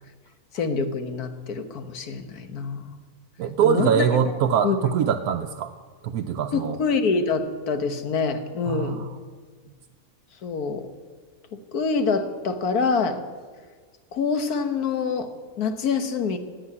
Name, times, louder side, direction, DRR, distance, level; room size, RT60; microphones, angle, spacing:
voice 1, 0.5-3.0 3.6-4.1 4.6-4.8 6.5-9.1 10.4-10.9 11.5-13.2 14.1-16.4, left 4 dB, 90° left, 8 dB, 1.7 m, -26 dB
voice 2, 3.4-5.7 6.0-6.8 8.7-9.1, right 7 dB, 90° right, 4 dB, 1.2 m, -23 dB
15.5 x 8.8 x 9.7 m, 1.5 s
omnidirectional pair, 1.6 m